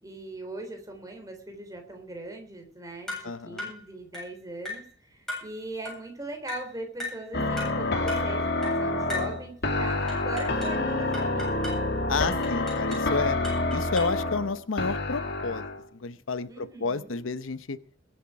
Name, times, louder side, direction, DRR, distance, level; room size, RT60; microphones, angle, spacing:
voice 1, 0.0-11.7 16.5-17.2, right 2 dB, 15° right, 4 dB, 3.4 m, -40 dB
sound 1, 3.1-3.3 3.6-3.8 4.1-4.3 4.7-4.9 5.3-5.5 5.9-6.0 6.5-6.7 7.0-7.2 7.6-7.8 8.1-8.3 8.6-8.8 9.1-9.4 10.1-10.8 11.1-11.8 12.4-13.1 13.4-14.2, left 2 dB, ahead, 7.9 m, -37 dB
voice 2, 3.2-3.7 12.1-13.4 13.7-15.6 15.9-17.8, left 4 dB, 85° left, 14 dB, 0.8 m, -30 dB
sound 2, 7.3-15.8, left 2 dB, 55° left, 2.2 m, -28 dB
21.5 x 8.0 x 4.8 m, 0.39 s
head